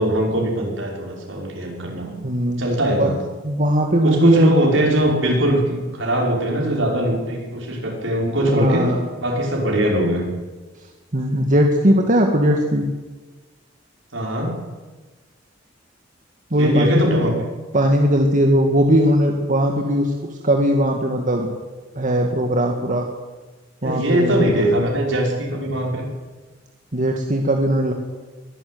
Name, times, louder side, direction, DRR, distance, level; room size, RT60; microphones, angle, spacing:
voice 1, 0.0-2.2 2.6-3.2 4.0-8.9 9.2-10.3 14.1-14.5 16.6-17.3 23.8-26.1, equal, 75° right, 0 dB, 5.9 m, -21 dB
voice 2, 2.2-2.6 3.0-3.1 3.4-4.5 8.5-9.1 11.1-12.9 16.5-17.1 17.7-20.1 20.4-21.5 22.0-23.1 23.8-24.7 26.9-27.9, equal, 45° right, 2 dB, 1.9 m, -18 dB
22.5 x 12.0 x 9.5 m, 1.3 s
head